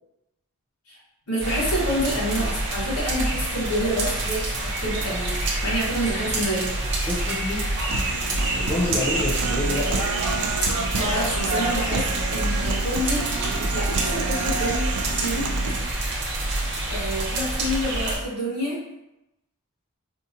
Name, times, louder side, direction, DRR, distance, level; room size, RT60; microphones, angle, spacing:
voice 1, 1.3-6.7 10.9-12.0 12.3-13.3 13.7-15.5 16.9-18.8, equal, 85° left, -7 dB, 1.4 m, -28 dB
sound 1, 1.4-18.2, right 2 dB, 50° right, 0.9 m, -27 dB
voice 2, 7.1-7.6 8.5-10.2, left 2 dB, 30° left, -6 dB, 0.8 m, -28 dB
Human voice, 7.9-15.9, right 4 dB, 75° right, 0.4 m, -29 dB
4.3 x 2.4 x 2.8 m, 0.90 s
head